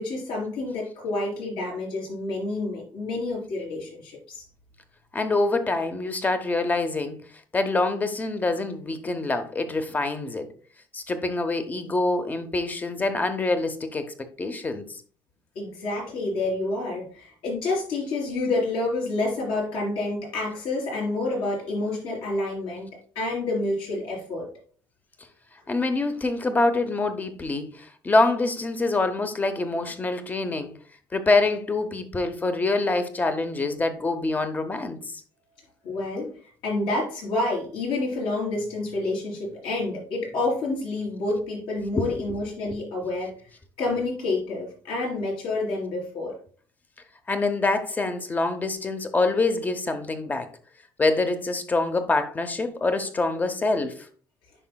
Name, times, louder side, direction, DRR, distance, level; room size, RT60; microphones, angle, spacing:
voice 1, 0.0-4.4 15.6-22.9 23.2-24.5 35.8-36.3 36.6-43.3 43.8-46.4, left 2 dB, 70° left, 3.7 m, -28 dB
voice 2, 5.1-7.2 7.5-10.5 10.9-14.9 25.7-30.7 31.1-35.0 41.9-42.2 47.3-50.5 51.0-54.1, left 2 dB, 15° left, 0.7 m, -25 dB
9.9 x 5.3 x 2.2 m
cardioid pair, 145°, 9 cm